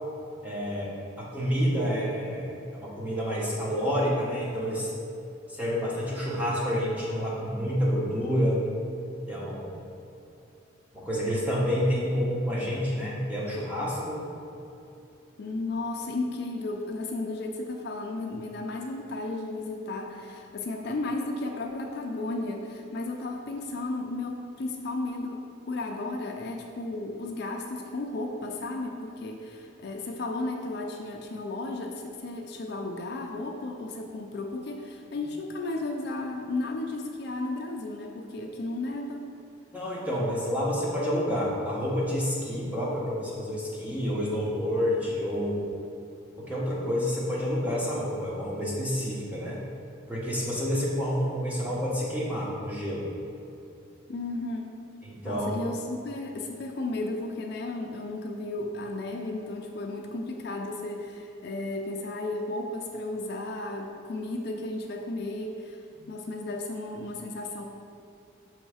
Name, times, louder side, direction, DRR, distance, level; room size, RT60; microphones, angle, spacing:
voice 1, 0.4-4.9 5.5-8.6 9.3-9.8 10.9-14.2 39.7-45.6 46.4-49.6 50.1-53.1 55.0-55.6 66.0-66.1, equal, 5° right, -6 dB, 0.9 m, -29 dB
voice 2, 15.4-39.4 54.1-54.7 55.2-67.6, left 2 dB, 55° left, 2 dB, 0.4 m, -34 dB
6.3 x 3.1 x 4.8 m, 2.7 s
head